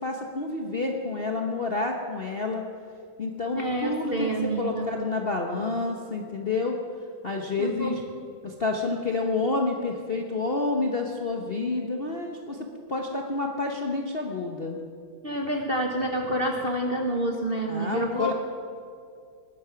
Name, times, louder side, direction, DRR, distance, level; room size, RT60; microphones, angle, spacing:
voice 1, 0.0-2.6 3.2-6.8 7.2-8.0 8.4-14.8 17.7-18.3, left 3 dB, 40° left, 1 dB, 0.9 m, -29 dB
voice 2, 3.6-4.9 7.6-8.0 15.2-18.3, right 1 dB, 35° right, 2 dB, 1.0 m, -28 dB
19.5 x 11.0 x 5.8 m, 2.4 s
omnidirectional pair, 2.3 m